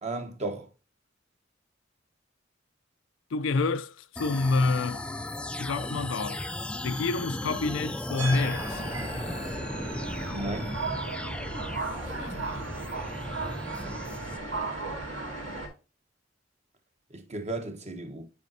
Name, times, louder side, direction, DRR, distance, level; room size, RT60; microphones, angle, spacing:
voice 1, 0.0-0.7 10.2-10.8 13.9-14.0 17.1-18.3, right 2 dB, 35° right, 1.1 m, -35 dB
voice 2, 3.3-5.0 5.6-6.4 6.8-8.8 12.2-12.7, left 3 dB, 75° left, 0.5 m, -28 dB
sound 1, 4.1-14.4, left 1 dB, 5° left, 0.4 m, -36 dB
sound 2, 8.2-15.7, right 3 dB, 80° right, 3.0 m, -35 dB
8.3 x 5.0 x 2.7 m
head